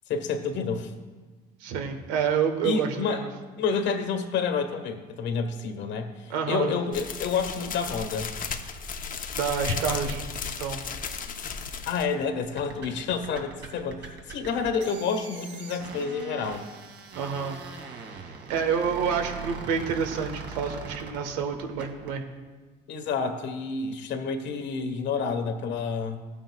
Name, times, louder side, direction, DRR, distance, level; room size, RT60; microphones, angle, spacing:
voice 1, 0.1-0.9 2.6-3.3 3.6-8.3 11.8-16.6 22.9-26.2, left 5 dB, 60° left, 6 dB, 1.5 m, -29 dB
voice 2, 1.6-3.3 6.3-6.7 9.3-10.2 10.6-10.8 17.1-17.6 18.2-22.2, right 7 dB, 85° right, 5 dB, 1.3 m, -28 dB
sound 1, 6.9-12.1, left 5 dB, 40° left, 1.0 m, -35 dB
sound 2, 12.4-22.1, right 5 dB, 55° right, 2.3 m, -41 dB
16.0 x 8.9 x 2.4 m, 1.3 s
hypercardioid pair, 70°, 21 cm